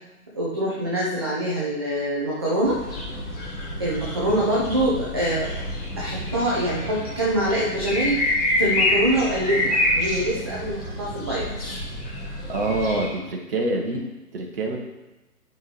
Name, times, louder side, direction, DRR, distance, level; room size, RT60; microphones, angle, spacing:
voice 1, 0.3-2.8 3.8-5.5 6.0-11.5, right 1 dB, 15° right, -6 dB, 0.6 m, -24 dB
sound 1, 2.6-13.1, left 1 dB, 25° left, 2.8 m, -27 dB
voice 2, 12.5-14.0 14.3-14.8, right 2 dB, 40° right, 0 dB, 1.3 m, -25 dB
11.0 x 5.4 x 3.2 m, 1.1 s
figure-of-eight pair, 145°, 46 cm